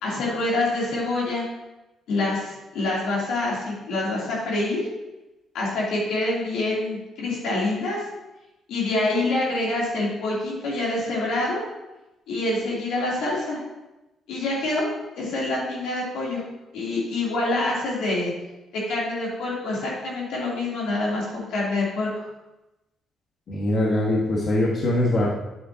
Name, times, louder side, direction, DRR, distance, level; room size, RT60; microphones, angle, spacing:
voice 1, 0.0-1.4 2.1-4.8 5.5-8.0 8.7-11.6 12.3-13.6 14.3-14.9 15.1-16.4 16.7-18.3 18.7-22.2, left 2 dB, 90° left, -5 dB, 3.0 m, -26 dB
voice 2, 23.5-25.3, left 1 dB, 50° left, -4 dB, 1.5 m, -22 dB
8.8 x 7.9 x 2.8 m, 1.0 s
cardioid pair, 90°, 0 cm